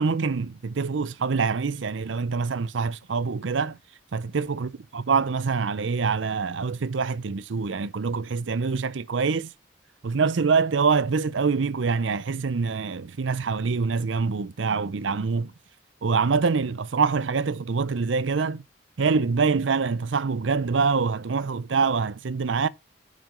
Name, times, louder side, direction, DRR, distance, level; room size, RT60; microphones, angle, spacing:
voice 1, 0.0-3.8 4.1-9.5 10.0-15.5 16.0-18.6 19.0-22.7, right 5 dB, 85° right, 0.6 m, -25 dB
7.5 x 5.0 x 5.3 m
head